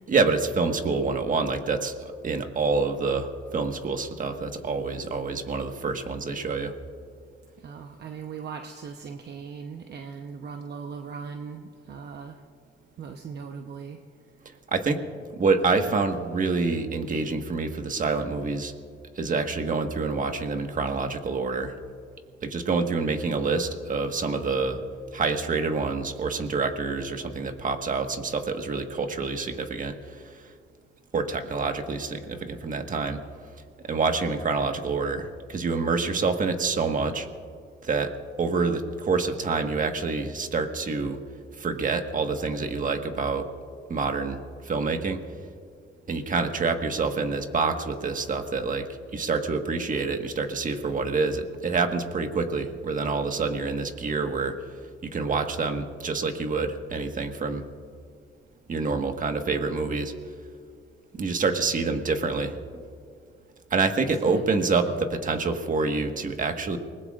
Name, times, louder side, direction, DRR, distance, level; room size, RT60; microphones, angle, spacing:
voice 1, 0.1-6.7 14.7-15.0 15.4-18.7 19.2-21.7 22.4-24.8 25.1-30.4 31.1-33.2 33.8-37.3 37.8-38.1 38.4-41.2 41.6-43.5 43.9-44.4 44.6-45.2 46.1-54.6 55.0-57.7 58.7-60.1 61.2-62.6 63.7-66.8, right 4 dB, 40° right, 5 dB, 1.5 m, -27 dB
voice 2, 7.6-12.4 13.0-14.0 64.1-65.0, right 6 dB, 60° right, 5 dB, 0.9 m, -39 dB
28.5 x 20.0 x 2.5 m, 2.3 s
cardioid pair, 90°, 20 cm